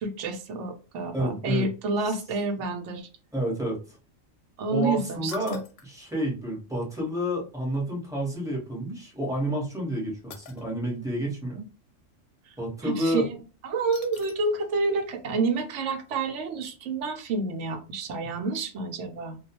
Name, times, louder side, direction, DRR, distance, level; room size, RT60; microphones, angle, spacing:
voice 1, 0.0-3.1 4.6-5.6 12.5-12.6 12.8-13.2 13.6-19.4, right 3 dB, 70° right, 0.9 m, -29 dB
voice 2, 1.1-1.7 2.1-2.2 3.3-3.8 4.7-11.6 12.6-13.3, equal, 5° right, 0.8 m, -30 dB
sound 1, 5.3-5.9 8.3-8.4 10.3-10.6 13.9-14.6 15.0-15.1 15.5-15.6, left 5 dB, 70° left, 0.9 m, -46 dB
2.3 x 2.2 x 2.8 m
omnidirectional pair, 1.4 m